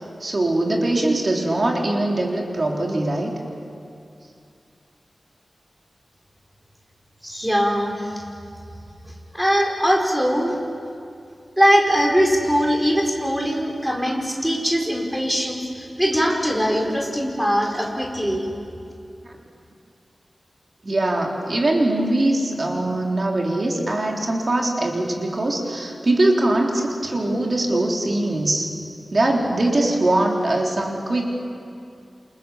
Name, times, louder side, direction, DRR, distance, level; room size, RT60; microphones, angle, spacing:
voice 1, 0.2-3.4 19.2-19.3 20.8-28.7 29.1-31.3, right 1 dB, 45° right, 0 dB, 3.7 m, -22 dB
voice 2, 7.2-8.1 9.3-10.6 11.6-18.5, equal, 5° right, 0 dB, 5.0 m, -21 dB
28.5 x 27.5 x 7.5 m, 2.5 s
wide cardioid pair, 100°, 0 cm